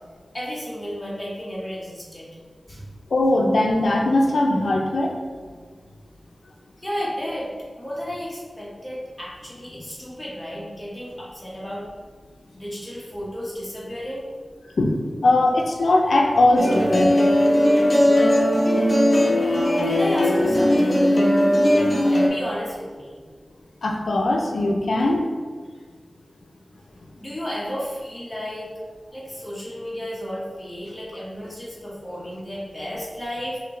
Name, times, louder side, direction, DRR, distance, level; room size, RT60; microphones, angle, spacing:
voice 1, 0.3-2.3 2.7-2.8 6.8-7.5 7.8-11.8 12.5-14.3 19.3-21.2 21.9-23.2 27.2-28.7 29.1-33.6, equal, 15° left, -6 dB, 1.2 m, -32 dB
voice 2, 3.1-5.1 14.8-15.0 15.2-17.1 23.8-25.2, left 2 dB, 80° left, 1 dB, 0.6 m, -20 dB
sound 1, 16.6-22.3, left 1 dB, 45° left, 0.8 m, -18 dB
5.0 x 2.8 x 3.2 m, 1.6 s
wide cardioid pair, 95°, 0 cm